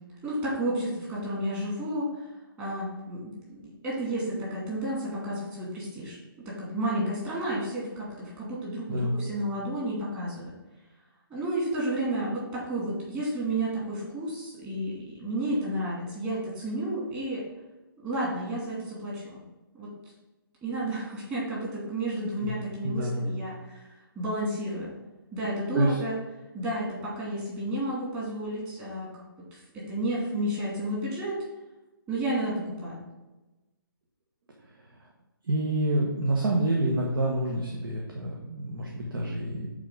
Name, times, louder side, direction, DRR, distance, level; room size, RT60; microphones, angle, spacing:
voice 1, 0.2-2.2 2.6-6.2 6.5-10.5 11.3-17.4 18.0-19.4 19.7-19.9 20.6-23.9 24.2-24.9 25.3-26.2 26.5-29.1 29.5-31.4 32.1-33.0, right 1 dB, 20° right, -6 dB, 2.4 m, -31 dB
voice 2, 22.8-23.3 25.7-26.0 34.6-35.1 35.4-39.7, right 1 dB, 70° right, -1 dB, 1.3 m, -28 dB
8.6 x 3.8 x 3.8 m, 1.1 s
hypercardioid pair, 155°, 12 cm